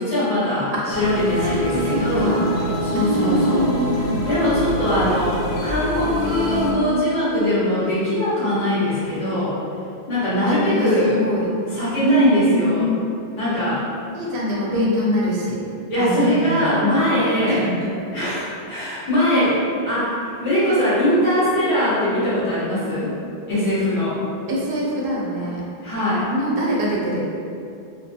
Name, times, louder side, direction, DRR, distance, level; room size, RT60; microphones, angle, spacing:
voice 1, 0.0-2.3 2.8-3.7 4.3-9.5 10.1-11.2 11.7-12.9 13.4-13.8 15.9-17.6 18.1-19.6 19.9-23.1 23.5-24.1 25.8-26.3, left 1 dB, 35° left, -14 dB, 0.9 m, -21 dB
sound 1, 0.9-6.7, equal, 85° left, 0.8 m, -25 dB
voice 2, 1.4-2.5 2.9-4.3 4.9-5.0 10.3-11.5 12.0-12.8 14.1-15.6 15.9-16.7 17.5-17.9 19.4-19.6 24.5-25.6 26.3-27.3, equal, 70° right, -5 dB, 0.7 m, -23 dB
2.8 x 2.1 x 2.7 m, 2.5 s
omnidirectional pair, 1.0 m